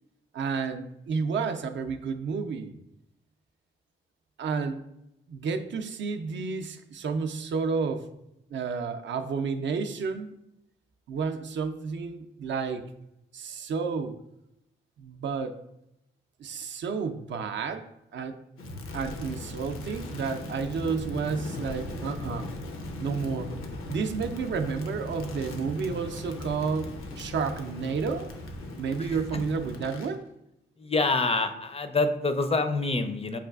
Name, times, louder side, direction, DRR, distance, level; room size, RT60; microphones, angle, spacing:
voice 1, 0.3-2.7 4.4-4.8 5.3-8.1 8.5-10.3 11.1-12.8 13.3-14.2 15.0-15.5 16.4-17.8 18.1-18.4 18.9-22.5 23.0-23.5 23.9-28.3 28.8-30.2, right 5 dB, 60° right, 7 dB, 0.4 m, -31 dB
Crackle, 18.6-30.1, left 1 dB, 85° left, 0.5 m, -38 dB
voice 2, 30.8-33.4, left 3 dB, 30° left, 8 dB, 0.4 m, -26 dB
5.4 x 2.4 x 2.3 m, 0.82 s
cardioid pair, 55°, 21 cm